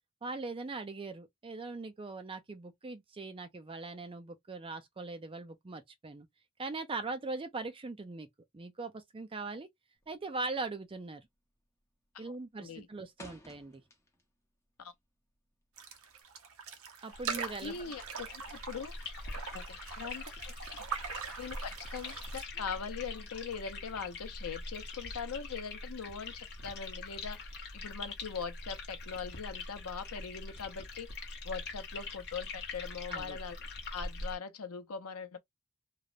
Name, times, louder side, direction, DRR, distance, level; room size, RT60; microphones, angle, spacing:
voice 1, 0.2-6.3 6.6-8.3 8.5-9.7 10.1-11.3 12.2-13.8 17.0-17.8 33.1-33.4, right 3 dB, 25° right, 0.4 m, -40 dB
sound 1, 10.0-10.4 10.6-11.0 11.3-11.8 12.1-14.4 14.8-16.2, left 1 dB, 10° left, 0.7 m, -55 dB
sound 2, 15.8-22.4, right 6 dB, 65° right, 0.6 m, -42 dB
sound 3, 17.1-34.4, left 3 dB, 50° left, 0.9 m, -43 dB
voice 2, 17.5-18.9 19.5-20.8 21.4-33.6 33.9-35.4, left 6 dB, 75° left, 0.6 m, -41 dB
3.1 x 2.0 x 2.4 m
head